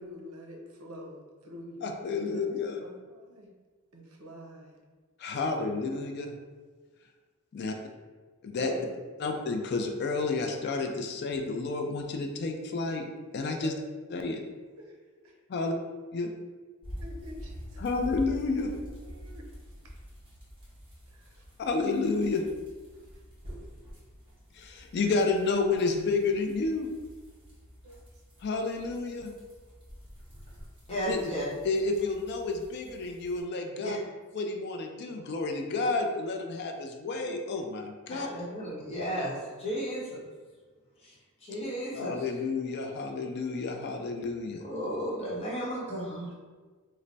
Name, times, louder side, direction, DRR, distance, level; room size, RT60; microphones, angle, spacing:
voice 1, 0.0-2.5 2.8-3.5 3.9-4.8 5.3-6.1 7.7-7.9 8.6-8.9 9.2-9.4 13.6-13.8 14.8-15.4 17.0-17.8 18.7-19.5 19.8-20.0 21.1-21.4 22.8-23.0 27.8-28.0, left 1 dB, 75° right, 0 dB, 0.6 m, -47 dB
voice 2, 1.8-2.8 5.2-6.3 7.5-7.8 8.4-8.7 9.2-13.1 13.3-13.7 14.1-14.4 15.5-15.7 16.1-16.3 17.8-18.7 21.6-22.4 24.5-26.9 28.4-29.3 31.1-31.2 31.6-34.0 34.3-38.3 41.9-44.6, left 3 dB, 50° left, 4 dB, 0.3 m, -30 dB
sound 1, 16.8-33.4, equal, 25° right, 0.9 m, -47 dB
voice 3, 30.9-31.4 33.8-34.0 38.1-40.2 41.0-41.1 41.4-42.1 44.6-46.3, equal, 30° left, -7 dB, 0.9 m, -34 dB
3.2 x 2.1 x 3.9 m, 1.4 s
head